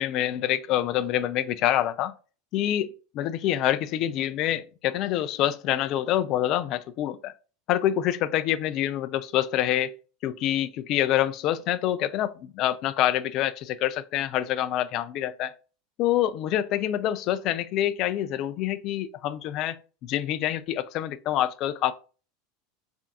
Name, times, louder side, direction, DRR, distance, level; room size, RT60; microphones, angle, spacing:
voice 1, 0.0-2.1 2.5-7.3 7.7-9.9 10.2-15.5 16.0-21.9, left 12 dB, 50° left, 0.4 m, -26 dB
3.7 x 3.4 x 2.7 m
hypercardioid pair, 85°, 0 cm